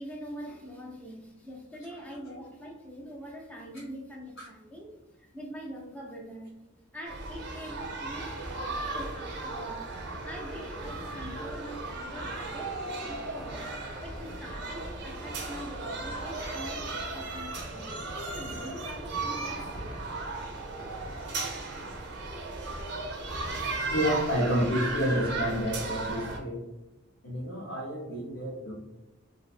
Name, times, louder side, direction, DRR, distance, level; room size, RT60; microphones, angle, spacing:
voice 1, 0.0-6.6 6.9-9.8 10.2-13.7 14.0-18.0 18.3-19.9, equal, 5° left, -2 dB, 0.4 m, -44 dB
sound 1, 7.1-26.4, right 2 dB, 55° right, 0.5 m, -36 dB
voice 2, 23.9-26.6 27.2-28.7, equal, 90° left, -6 dB, 0.6 m, -29 dB
2.6 x 2.1 x 2.4 m, 1.0 s
head